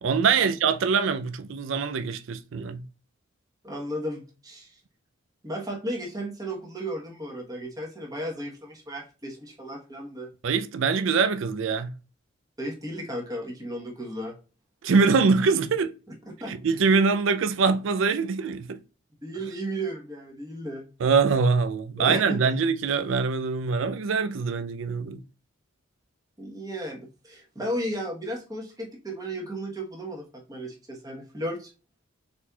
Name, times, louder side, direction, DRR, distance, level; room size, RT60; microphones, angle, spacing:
voice 1, 0.0-2.8 10.4-11.9 14.8-15.9 16.5-18.8 21.0-25.2, right 5 dB, 70° right, 0.4 m, -23 dB
voice 2, 3.6-4.8 5.4-10.3 12.6-14.3 16.3-16.9 19.2-20.8 22.0-22.4 26.4-31.7, right 1 dB, 20° right, 1.1 m, -34 dB
4.3 x 4.1 x 2.3 m
head